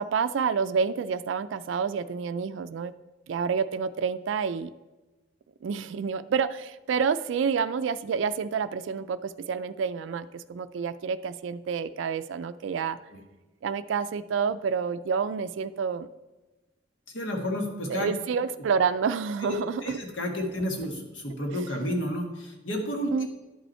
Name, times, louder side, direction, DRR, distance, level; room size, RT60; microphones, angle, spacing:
voice 1, 0.0-2.9 3.3-4.7 5.6-13.0 13.6-16.1 17.9-20.0 23.1-23.3, right 6 dB, 80° right, 12 dB, 0.3 m, -28 dB
voice 2, 17.1-18.1 19.4-19.5 19.8-23.1, equal, 80° left, 2 dB, 1.5 m, -31 dB
10.5 x 5.3 x 4.3 m, 1.1 s
head